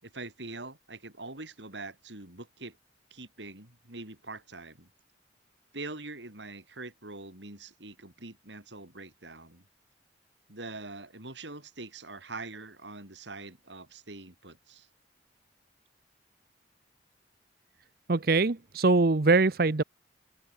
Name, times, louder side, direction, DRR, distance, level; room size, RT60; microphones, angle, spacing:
voice 1, 0.0-2.8 3.1-4.9 5.7-9.6 10.5-14.9, right 2 dB, 75° right, 5.1 m, -43 dB
voice 2, 18.1-19.8, right 3 dB, 55° right, 0.8 m, -23 dB
head